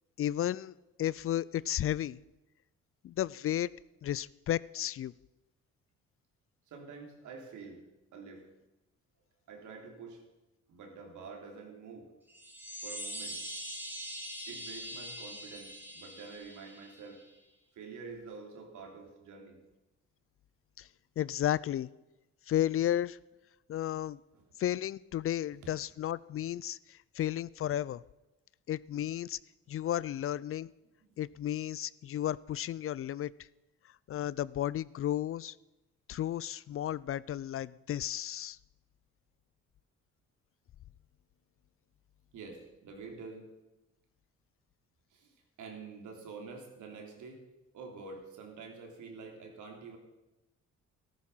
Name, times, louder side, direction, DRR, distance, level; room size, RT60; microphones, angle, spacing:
voice 1, 0.2-2.2 3.0-3.7 4.0-5.1 20.8-20.9 21.2-21.9 22.5-23.2 23.7-24.2 24.6-28.0 28.7-29.4 29.7-30.7 31.2-33.3 34.1-35.6 36.1-38.6, left 12 dB, 45° left, 21 dB, 0.4 m, -33 dB
voice 2, 6.7-7.8 8.1-8.4 9.5-10.2 10.7-12.1 12.8-13.4 14.5-17.2 17.7-19.6 24.3-24.4 25.6-25.7 42.3-43.5 45.1-47.4 47.7-50.0, right 4 dB, 75° right, 2 dB, 3.3 m, -47 dB
sound 1, 12.3-17.3, equal, 5° right, 3.0 m, -43 dB
13.5 x 13.0 x 5.6 m, 1.0 s
cardioid pair, 90°, 30 cm